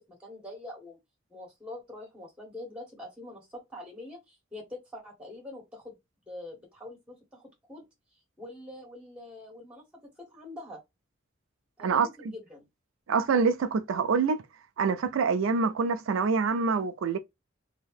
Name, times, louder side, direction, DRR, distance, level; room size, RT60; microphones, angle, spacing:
voice 1, 0.1-1.0 1.3-5.9 6.3-7.8 8.4-9.8 10.2-10.8 11.8-12.7, left 1 dB, 5° right, 1.6 m, -44 dB
voice 2, 13.1-14.4 14.8-17.2, right 5 dB, 80° right, 0.4 m, -25 dB
2.8 x 2.7 x 3.4 m
head